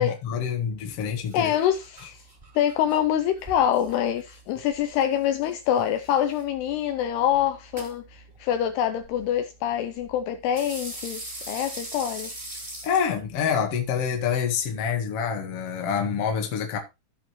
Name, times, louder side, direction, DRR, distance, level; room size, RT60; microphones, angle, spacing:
voice 1, 0.0-1.5 12.8-16.8, left 7 dB, 50° left, 1.8 m, -27 dB
sound 1, 0.7-14.9, right 1 dB, 15° right, 2.8 m, -43 dB
voice 2, 1.3-2.2 2.6-12.3, left 10 dB, 80° left, 2.5 m, -25 dB
15.5 x 5.5 x 3.1 m
omnidirectional pair, 5.1 m